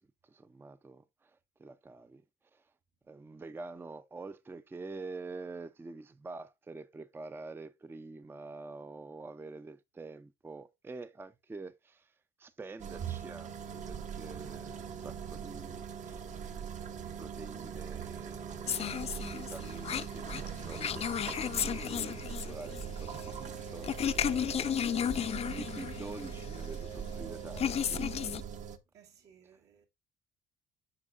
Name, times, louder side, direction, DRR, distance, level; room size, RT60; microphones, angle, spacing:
voice 1, 0.0-2.2 2.5-2.6 3.1-12.1 12.4-16.3 17.2-25.2 25.5-28.1, right 3 dB, 15° right, 0.4 m, -47 dB
sound 1, 12.8-28.8, right 7 dB, 45° right, 0.9 m, -41 dB
sound 2, 18.7-28.4, left 9 dB, 40° left, 0.5 m, -34 dB
voice 2, 28.9-29.8, right 8 dB, 75° right, 2.4 m, -60 dB
8.6 x 6.2 x 2.5 m
cardioid pair, 110°, 17 cm